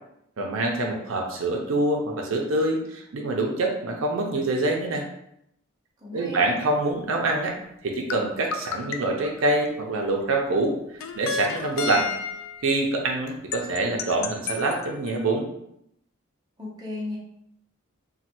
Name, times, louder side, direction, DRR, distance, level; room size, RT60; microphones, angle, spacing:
voice 1, 0.4-5.0 6.1-7.6 7.8-10.8 11.1-12.1 12.6-15.5, right 2 dB, 75° right, 1 dB, 0.5 m, -25 dB
voice 2, 6.0-6.6 16.6-17.2, left 2 dB, 20° right, -4 dB, 0.6 m, -35 dB
sound 1, 8.1-10.0 11.0-12.7 13.5-15.2, left 6 dB, 75° left, 0.3 m, -32 dB
3.1 x 2.2 x 2.9 m, 0.75 s
head